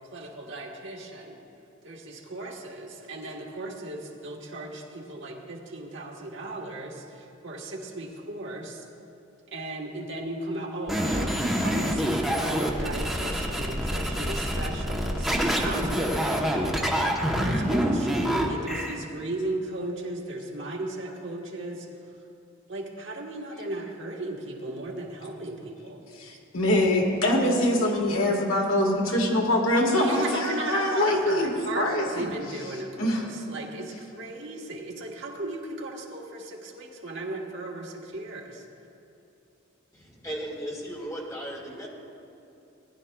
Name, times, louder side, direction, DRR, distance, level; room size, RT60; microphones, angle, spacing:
voice 1, 0.1-1.4 1.8-8.8 9.5-11.3 11.6-16.7 17.3-21.9 22.7-26.0 30.0-38.6, right 2 dB, 60° right, 0 dB, 1.3 m, -36 dB
sound 1, 10.9-18.9, equal, ahead, 0.9 m, -26 dB
voice 2, 26.2-32.3 33.0-33.2, left 1 dB, 80° left, 0 dB, 1.6 m, -24 dB
voice 3, 39.9-41.9, equal, 15° left, -3 dB, 1.9 m, -36 dB
19.0 x 11.0 x 2.3 m, 2.8 s
head